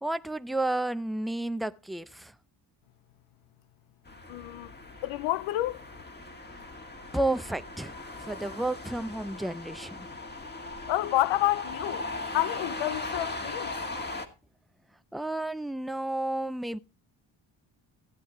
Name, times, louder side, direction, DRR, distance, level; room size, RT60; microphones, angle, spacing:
voice 1, 0.0-2.3 7.1-10.1 15.1-16.8, right 2 dB, ahead, 0.5 m, -31 dB
sound 1, 4.1-14.3, left 2 dB, 20° left, 2.1 m, -39 dB
voice 2, 4.3-4.7 5.0-5.8 10.9-13.8, left 16 dB, 85° left, 0.6 m, -29 dB
16.0 x 9.1 x 3.1 m
cardioid pair, 85°, 46 cm